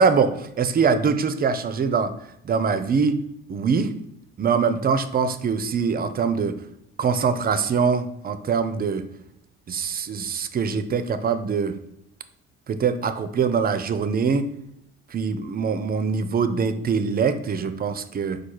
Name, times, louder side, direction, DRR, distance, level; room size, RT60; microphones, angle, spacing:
voice 1, 0.0-2.1 2.4-3.2 3.5-3.9 4.4-6.6 7.0-9.1 9.7-11.8 12.7-14.5 15.1-18.4, right 5 dB, 30° right, 11 dB, 0.4 m, -23 dB
4.4 x 2.3 x 4.5 m, 0.79 s
hypercardioid pair, 60°, 31 cm